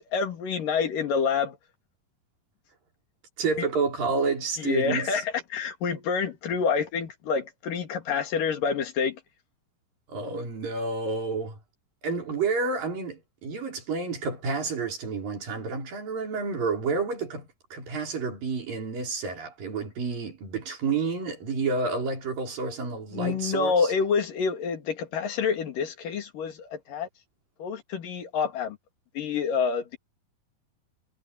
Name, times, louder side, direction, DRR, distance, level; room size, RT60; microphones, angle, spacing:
voice 1, 0.0-1.6 4.6-9.2 23.1-27.1 27.6-28.8 29.2-30.0, left 6 dB, 70° left, 3.9 m, -27 dB
voice 2, 3.4-5.2 10.1-11.6 12.0-17.4 17.7-23.9, right 4 dB, 75° right, 6.6 m, -30 dB
omnidirectional pair, 4.0 m